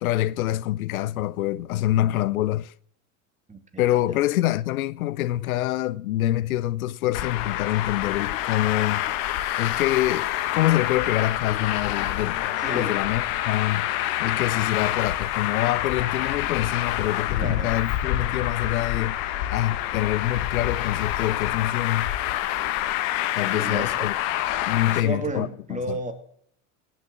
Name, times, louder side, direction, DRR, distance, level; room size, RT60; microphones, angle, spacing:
voice 1, 0.0-2.7 3.8-9.0 9.3-13.9 14.2-19.2 19.5-22.1 23.3-24.1 24.7-26.0, left 14 dB, 85° left, 0.7 m, -26 dB
voice 2, 3.5-4.2 12.6-13.0 17.4-17.8 23.4-24.1 24.9-26.1, right 2 dB, 15° right, 3.1 m, -33 dB
Traffic noise roadway noise, 7.1-25.0, left 13 dB, 65° left, 1.6 m, -27 dB
18.0 x 7.4 x 7.4 m
hypercardioid pair, 90°, 42 cm